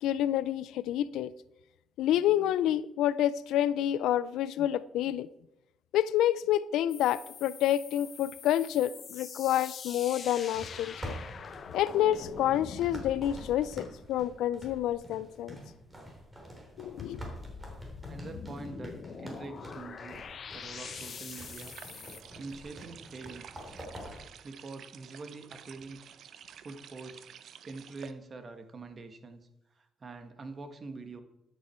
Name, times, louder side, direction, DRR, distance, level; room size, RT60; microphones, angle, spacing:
voice 1, 0.0-1.3 2.0-5.3 5.9-11.2 11.7-15.6 16.8-17.3, left 12 dB, 85° left, 0.4 m, -28 dB
sound 1, 6.9-14.3 17.0-22.2, left 6 dB, 50° left, 0.8 m, -45 dB
sound 2, 10.6-24.2, equal, 15° right, 3.5 m, -47 dB
voice 2, 18.1-21.8 22.4-23.6 24.4-26.0 26.6-27.2 27.6-29.5 29.7-31.2, right 3 dB, 40° right, 1.3 m, -45 dB
Leaking drainage system of an old limekiln, 20.7-28.1, right 9 dB, 70° right, 0.7 m, -51 dB
12.5 x 9.0 x 4.4 m
cardioid pair, 90°, 0 cm